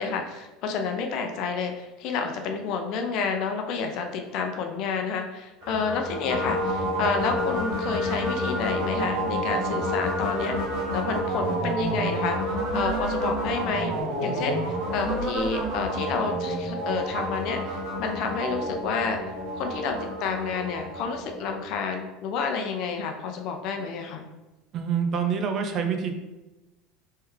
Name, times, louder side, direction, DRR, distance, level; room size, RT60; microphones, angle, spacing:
voice 1, 0.0-10.6 10.9-12.4 12.7-13.9 14.2-19.2 19.5-24.3, left 5 dB, 60° left, 4 dB, 0.6 m, -29 dB
sound 1, 5.6-21.8, equal, 65° right, 1.4 m, -29 dB
voice 2, 24.7-26.1, right 6 dB, 45° right, 6 dB, 0.6 m, -26 dB
3.4 x 3.3 x 3.2 m, 1.1 s
supercardioid pair, 100°, 0 cm